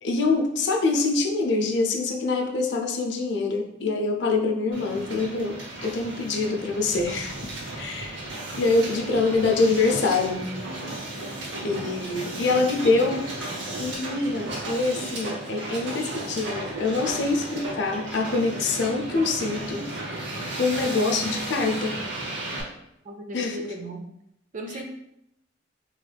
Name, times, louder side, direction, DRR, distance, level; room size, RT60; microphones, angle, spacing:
voice 1, 0.0-7.5 7.8-8.3 8.6-10.5 11.6-13.3 13.8-19.9 20.6-22.0 23.3-23.6 24.7-24.8, left 3 dB, 65° left, 3 dB, 0.5 m, -25 dB
Hiss, 4.7-22.6, right 1 dB, 70° right, 0.8 m, -34 dB
voice 2, 23.0-24.0 24.5-24.8, right 1 dB, 40° right, 3 dB, 0.4 m, -36 dB
3.2 x 3.0 x 2.3 m, 0.79 s
head